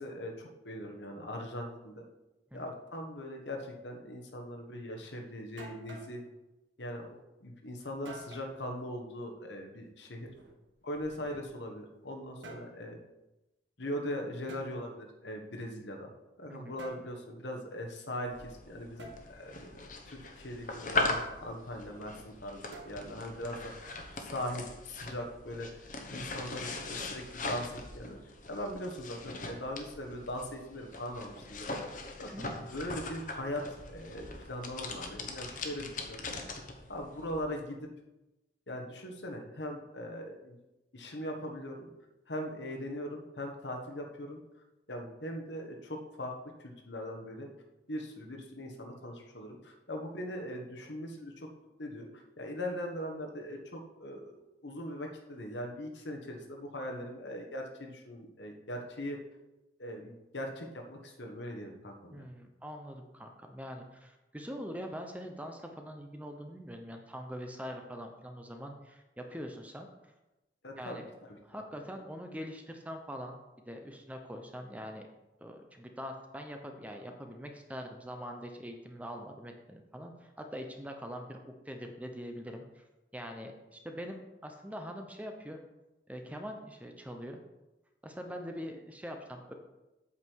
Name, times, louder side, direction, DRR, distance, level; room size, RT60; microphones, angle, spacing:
voice 1, 0.0-2.0 2.5-6.2 6.8-10.3 10.8-13.0 13.8-16.1 16.4-19.8 20.0-25.7 26.1-28.2 28.5-33.6 33.9-36.4 36.9-37.9 38.7-40.6 40.9-41.9 42.3-44.4 44.9-46.3 46.6-47.5 47.9-51.5 51.8-59.2 59.8-62.3 70.6-71.0 71.5-71.6, left 1 dB, 75° left, 2 dB, 1.5 m, -40 dB
sound 1, 5.6-6.2 8.1-8.5 10.2-11.7 12.2-12.7 14.5-14.7 16.8-17.1 19.0-19.2 22.7-23.3, right 2 dB, 80° right, 1.5 m, -49 dB
sound 2, 18.3-37.4, left 3 dB, 45° left, 1.2 m, -40 dB
voice 2, 32.3-32.7 62.1-69.9 70.8-71.1 71.4-73.4 73.6-75.1 75.4-82.8 83.1-85.6 86.1-87.4 88.0-89.5, equal, 10° right, 4 dB, 0.8 m, -43 dB
8.4 x 7.5 x 4.7 m, 1.0 s
head